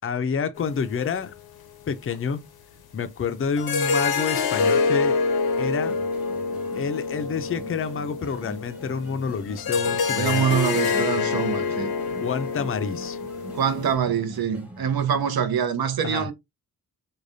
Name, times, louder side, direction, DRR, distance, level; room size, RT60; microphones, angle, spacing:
voice 1, 0.0-1.3 1.9-2.4 2.9-5.2 5.5-5.9 6.7-10.6 12.1-13.2 16.0-16.3, left 6 dB, 40° left, 0.4 m, -28 dB
sound 1, 0.6-1.2 2.1-2.2 3.6-13.9, left 5 dB, 80° left, 0.7 m, -26 dB
sound 2, 5.4-15.2, right 1 dB, 5° right, 0.7 m, -44 dB
voice 2, 10.2-11.9 13.5-16.3, right 8 dB, 80° right, 0.7 m, -24 dB
4.8 x 2.2 x 2.6 m
wide cardioid pair, 180°, 36 cm